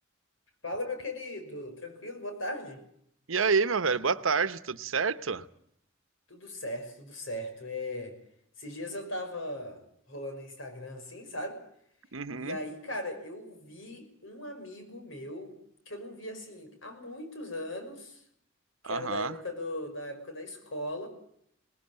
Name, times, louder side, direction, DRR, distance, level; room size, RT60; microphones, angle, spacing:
voice 1, 0.6-2.8 6.3-8.1 8.6-9.8 10.1-11.6 12.4-15.5 15.9-18.2 18.8-21.1, left 1 dB, 70° left, 6.0 m, -38 dB
voice 2, 3.3-5.5 12.1-12.6 18.8-19.4, right 5 dB, 75° right, 1.0 m, -28 dB
21.0 x 20.0 x 8.8 m
head